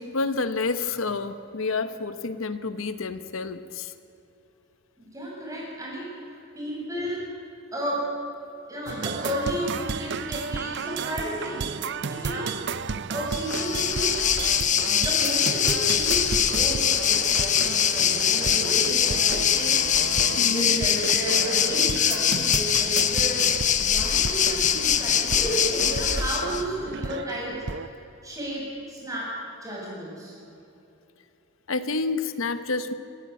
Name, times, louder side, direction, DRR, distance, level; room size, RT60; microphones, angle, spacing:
voice 1, 0.0-3.9 20.4-20.9 31.7-32.9, left 3 dB, 75° left, 11 dB, 0.9 m, -29 dB
voice 2, 5.0-7.4 7.7-8.1 8.7-12.7 13.1-14.2 14.8-20.0 20.4-23.5 23.8-28.0 28.2-30.4, right 1 dB, 15° right, -4 dB, 7.0 m, -33 dB
sound 1, 8.9-27.9, right 5 dB, 55° right, 0.6 m, -34 dB
Waves surf, 13.3-26.6, left 8 dB, 35° left, 0.9 m, -23 dB
23.5 x 12.5 x 9.5 m, 2.8 s
head